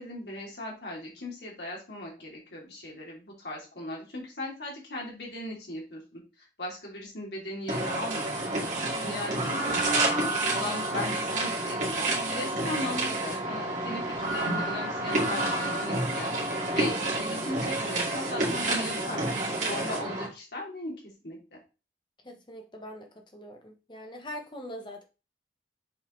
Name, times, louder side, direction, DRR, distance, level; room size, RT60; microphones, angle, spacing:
voice 1, 0.0-8.5 9.0-10.0 10.5-16.3 16.7-19.2 19.6-20.9 21.2-21.6, left 1 dB, 70° left, 3.1 m, -38 dB
sound 1, 7.7-20.3, right 2 dB, 45° right, 2.3 m, -29 dB
voice 2, 22.2-25.0, left 1 dB, 25° left, 1.1 m, -42 dB
7.0 x 4.2 x 3.9 m
head